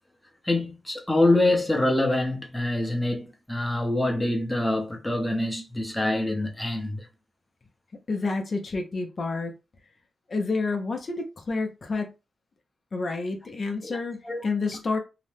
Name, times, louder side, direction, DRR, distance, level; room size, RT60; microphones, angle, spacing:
voice 1, 0.4-7.1 13.8-14.0 14.2-14.4, left 2 dB, 10° left, 0.7 m, -25 dB
voice 2, 8.1-9.5 10.3-12.1 12.9-15.0, left 3 dB, 45° left, 0.5 m, -29 dB
2.8 x 2.0 x 3.2 m
cardioid pair, 95°, 0 cm